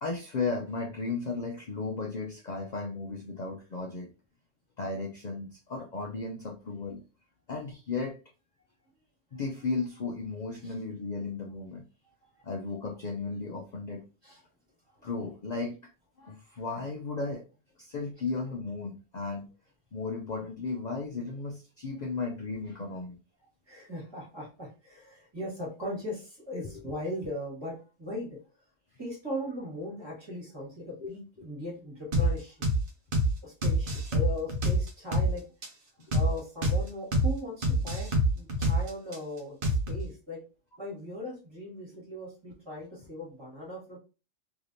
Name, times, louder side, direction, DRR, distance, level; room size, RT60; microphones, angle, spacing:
voice 1, 0.0-4.1 4.8-7.0 7.5-8.2 9.3-11.8 12.4-14.0 15.0-15.9 16.2-17.5 17.8-19.5 19.9-23.2 31.0-31.1 31.4-31.5, left 4 dB, 60° left, 1 dB, 0.4 m, -35 dB
voice 2, 23.7-28.4 29.0-32.7 33.4-35.5 36.1-40.4 40.8-44.0, left 1 dB, 20° right, -4 dB, 1.6 m, -39 dB
sound 1, 32.1-32.3 32.6-32.8 33.1-33.3 33.6-35.3 35.6-35.7 36.1-36.3 36.6-36.8 37.1-37.3 37.6-39.2 39.6-40.0, equal, 50° right, 0.8 m, -25 dB
3.3 x 2.8 x 2.6 m, 0.33 s
omnidirectional pair, 1.3 m